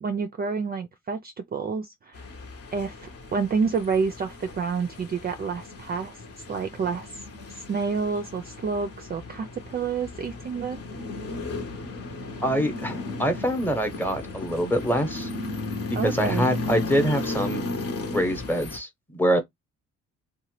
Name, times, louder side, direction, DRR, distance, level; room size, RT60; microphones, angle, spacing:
voice 1, 0.0-2.3 2.7-6.2 6.5-7.2 7.5-10.8 15.9-16.5, right 5 dB, 30° right, 0.4 m, -29 dB
sound 1, 2.1-18.8, left 2 dB, 50° left, 1.0 m, -35 dB
voice 2, 12.4-15.3 16.0-17.7 18.1-19.4, equal, 5° left, 0.9 m, -25 dB
2.8 x 2.2 x 3.0 m
cardioid pair, 90°, 30 cm